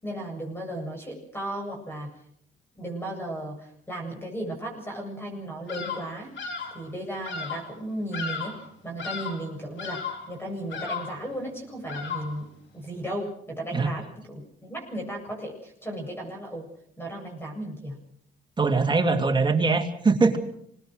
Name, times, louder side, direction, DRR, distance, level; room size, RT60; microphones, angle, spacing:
voice 1, 0.0-2.1 2.8-8.5 8.8-12.5 12.7-14.4 14.7-16.7 17.0-18.0, right 1 dB, 10° left, 1 dB, 7.7 m, -35 dB
Bird vocalization bird call bird song, 5.7-6.1 6.4-6.8 7.2-7.7 8.1-8.7 9.0-9.5 9.8-10.3 10.7-11.2 11.9-12.4, left 5 dB, 70° left, 4.5 m, -34 dB
voice 2, 18.6-20.4, right 4 dB, 25° right, 4 dB, 2.8 m, -22 dB
25.5 x 20.0 x 6.4 m, 0.70 s
cardioid pair, 90°, 20 cm